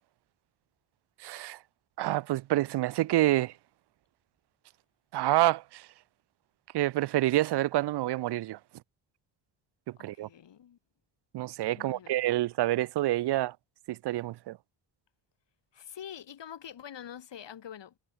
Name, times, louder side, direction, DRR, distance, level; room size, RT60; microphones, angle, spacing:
voice 1, 1.2-1.6 2.0-3.5 5.1-5.9 6.7-8.6 10.0-10.3 11.3-13.5 13.9-14.6, right 15 dB, 60° right, 0.5 m, -27 dB
voice 2, 10.0-10.8 11.7-12.1 15.7-18.0, left 9 dB, 65° left, 4.6 m, -45 dB
cardioid pair, 80°, 46 cm